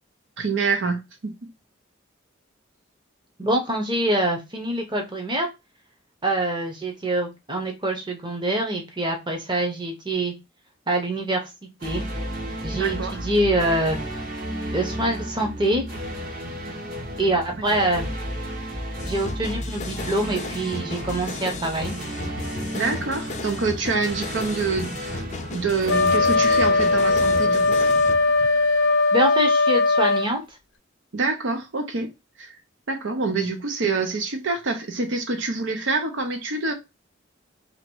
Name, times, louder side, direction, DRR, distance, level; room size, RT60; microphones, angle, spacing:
voice 1, 0.4-1.3 12.7-13.1 22.7-25.2 25.5-27.9 31.1-32.1 32.4-32.5 32.9-36.7, right 4 dB, 70° right, 0.7 m, -26 dB
voice 2, 3.4-5.5 6.2-10.3 10.9-11.4 11.8-12.1 12.6-14.0 14.7-15.8 17.2-18.1 19.1-21.9 28.9-30.4, right 1 dB, 25° right, 0.8 m, -25 dB
sound 1, 11.8-28.9, equal, 45° right, 1.1 m, -33 dB
sound 2, 19.0-28.1, left 4 dB, 35° left, 0.5 m, -35 dB
Wind instrument woodwind instrument, 25.9-30.3, left 3 dB, 85° left, 0.6 m, -19 dB
3.0 x 2.9 x 4.4 m
head